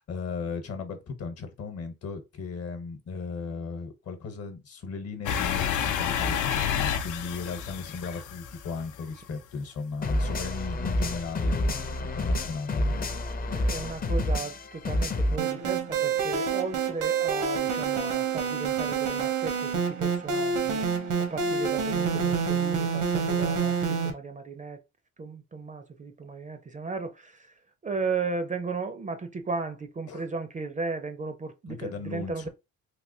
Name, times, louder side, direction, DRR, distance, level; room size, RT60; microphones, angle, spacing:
voice 1, 0.0-12.9 30.1-30.3 31.7-32.5, left 4 dB, 55° left, 1.0 m, -36 dB
sound 1, 5.3-9.2, left 8 dB, 80° left, 0.5 m, -29 dB
sound 2, 10.0-15.4, left 1 dB, 30° left, 0.6 m, -28 dB
voice 2, 13.5-20.8 21.3-24.8 25.2-27.5 27.8-32.5, right 4 dB, 25° right, 0.4 m, -35 dB
sound 3, 15.4-24.1, right 6 dB, 80° right, 1.0 m, -27 dB
3.4 x 2.8 x 2.7 m
cardioid pair, 90°, 30 cm